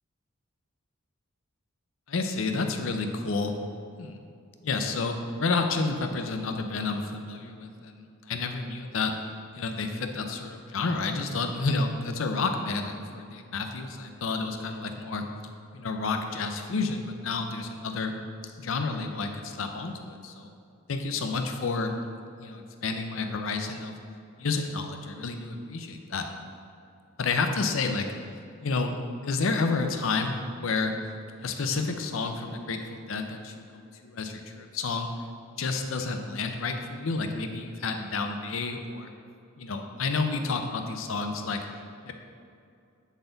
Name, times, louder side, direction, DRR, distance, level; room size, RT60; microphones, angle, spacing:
voice 1, 2.1-3.5 4.0-4.2 4.6-9.1 9.5-15.2 15.7-18.1 18.6-20.5 20.9-21.9 22.4-23.9 24.4-26.3 27.2-28.1 28.6-28.9 29.2-31.0 31.4-35.1 35.6-39.1 39.6-41.7 42.1-42.2, left 4 dB, 65° left, 5 dB, 0.6 m, -30 dB
8.1 x 4.1 x 3.9 m, 2.4 s
head